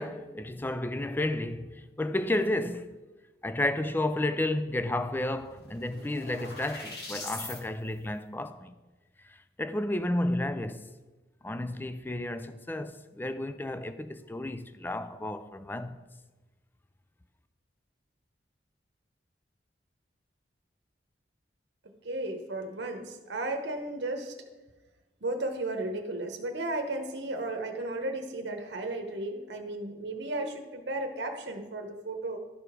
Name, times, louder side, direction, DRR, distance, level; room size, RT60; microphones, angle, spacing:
voice 1, 0.0-3.0 3.4-8.7 9.2-10.9 11.4-16.0, left 1 dB, 10° left, 0.4 m, -32 dB
sound 1, 4.7-4.8 5.1-7.6, left 2 dB, 60° left, 1.7 m, -42 dB
voice 2, 22.0-24.3 25.2-32.4, right 2 dB, 70° right, 0.9 m, -34 dB
12.0 x 4.8 x 4.9 m
head